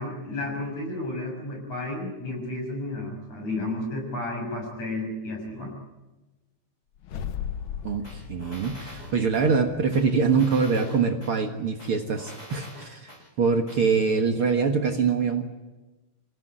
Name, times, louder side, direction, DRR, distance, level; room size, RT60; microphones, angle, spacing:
voice 1, 0.0-5.8, left 2 dB, 60° left, 2 dB, 7.3 m, -32 dB
sound 1, 7.0-11.3, left 8 dB, 90° left, 1.1 m, -38 dB
voice 2, 7.8-13.1 13.4-15.4, right 5 dB, 50° right, 3 dB, 2.1 m, -24 dB
sound 2, 8.0-9.5 9.9-11.3 11.8-13.2 13.7-13.8, equal, 25° left, 8.2 m, -45 dB
27.5 x 16.5 x 9.9 m, 1.1 s
omnidirectional pair, 3.6 m